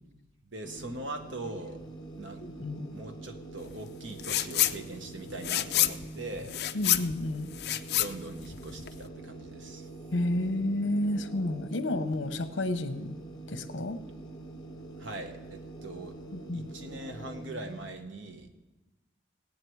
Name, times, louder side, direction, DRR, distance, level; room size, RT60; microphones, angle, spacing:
voice 1, 0.5-1.8 2.2-2.4 2.9-6.6 7.9-9.9 15.0-16.1 16.5-18.5, right 2 dB, 80° right, 6 dB, 1.2 m, -41 dB
sound 1, 0.6-17.9, right 2 dB, 20° left, 1.1 m, -45 dB
voice 2, 2.4-2.9 6.7-7.5 10.1-13.2 13.5-14.0 16.3-16.7, left 1 dB, 70° left, 10 dB, 0.8 m, -31 dB
sound 2, 4.2-4.8 5.1-9.0, left 14 dB, 55° left, 0.4 m, -28 dB
17.5 x 8.5 x 4.7 m, 1.1 s
head